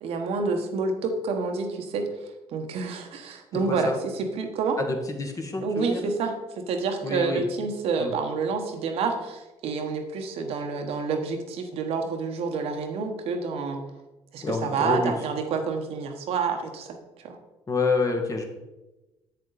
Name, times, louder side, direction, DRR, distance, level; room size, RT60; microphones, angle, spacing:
voice 1, 0.0-2.1 2.5-4.8 5.6-13.8 14.3-17.4, right 4 dB, 70° right, 4 dB, 1.1 m, -28 dB
voice 2, 3.5-3.9 4.8-6.0 7.0-7.4 8.0-8.1 14.4-15.1 17.7-18.4, left 3 dB, 30° left, 4 dB, 1.5 m, -27 dB
7.5 x 6.8 x 4.0 m, 1.1 s
supercardioid pair, 70°, 11 cm